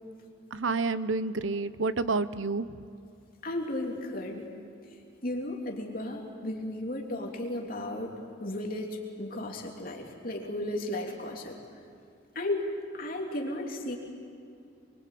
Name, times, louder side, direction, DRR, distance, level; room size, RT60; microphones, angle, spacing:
voice 1, 0.5-2.7, right 3 dB, 90° right, 14 dB, 0.8 m, -29 dB
voice 2, 3.4-4.4 5.2-8.1 8.4-11.6 12.3-12.7 12.9-14.0, left 1 dB, 50° left, 0 dB, 3.2 m, -34 dB
25.5 x 23.5 x 8.6 m, 2.5 s
head